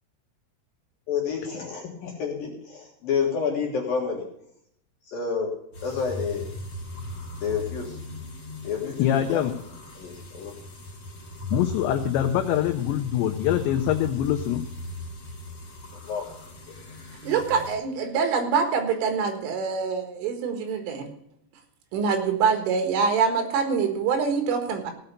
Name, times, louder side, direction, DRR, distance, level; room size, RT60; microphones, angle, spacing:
voice 1, 1.1-4.2 5.1-5.5 5.8-6.5 7.4-8.0 8.6-9.4 10.0-10.5 16.1-16.2 16.7-17.3, left 6 dB, 60° left, -1 dB, 2.5 m, -29 dB
sound 1, 5.7-17.7, left 1 dB, 30° left, 2.9 m, -38 dB
voice 2, 9.0-9.5 11.5-14.6, left 11 dB, 85° left, 5 dB, 2.5 m, -24 dB
voice 3, 17.2-21.1 21.9-24.9, right 5 dB, 75° right, 6 dB, 4.0 m, -25 dB
17.0 x 5.8 x 6.7 m, 0.74 s
omnidirectional pair, 6.0 m